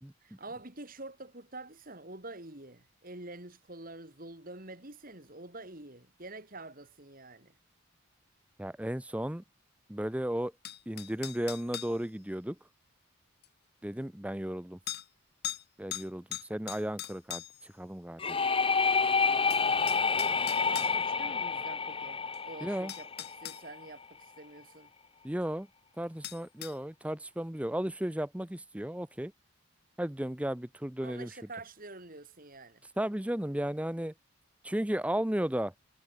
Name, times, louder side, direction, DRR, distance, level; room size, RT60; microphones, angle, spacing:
voice 1, 0.2-7.5 20.1-24.9 31.0-32.8, right 2 dB, 40° right, 2.9 m, -47 dB
voice 2, 8.6-9.4 9.9-10.5 10.9-12.6 13.8-14.8 15.8-17.4 17.8-18.4 22.6-22.9 25.2-25.7 26.0-29.3 30.0-31.3 33.0-34.1 34.6-35.7, right 1 dB, 5° right, 0.6 m, -34 dB
sound 1, 10.6-12.0 13.4-13.5 14.9-15.1 15.4-15.6 15.9-17.7 19.0-19.1 19.5-20.9 22.3-22.4 22.9-23.6 26.2-26.8, left 12 dB, 45° left, 2.3 m, -40 dB
sound 2, 18.2-23.8, left 5 dB, 25° left, 0.8 m, -29 dB
head